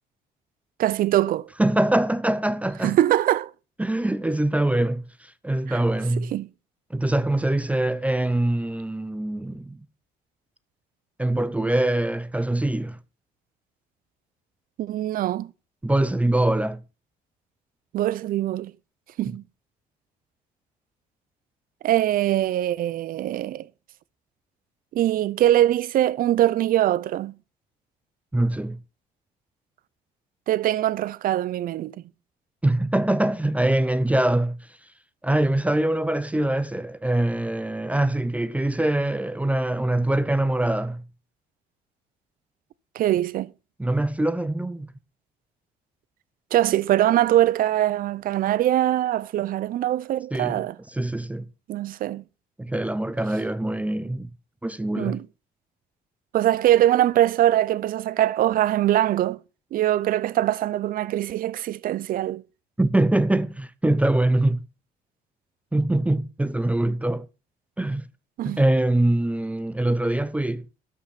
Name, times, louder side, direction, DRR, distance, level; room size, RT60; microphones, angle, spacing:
voice 1, 0.8-1.5 2.8-3.5 5.7-5.8 6.3-6.5 14.8-15.5 17.9-18.7 19.2-19.4 21.8-23.7 24.9-27.4 30.5-31.9 42.9-43.5 46.5-50.8 51.7-52.2 55.0-55.3 56.3-59.4 59.7-62.4 68.4-68.6, right 13 dB, 55° right, 0.5 m, -22 dB
voice 2, 1.6-3.0 3.8-6.3 6.9-9.8 11.2-13.0 15.8-16.8 28.3-28.8 32.6-34.7 35.2-41.0 43.8-44.9 50.3-50.6 50.9-51.5 52.6-54.3 54.6-55.2 62.8-64.6 65.7-67.3 67.8-68.1 68.4-70.7, right 1 dB, 10° right, 0.5 m, -23 dB
12.5 x 5.5 x 5.8 m
cardioid pair, 110°, 17 cm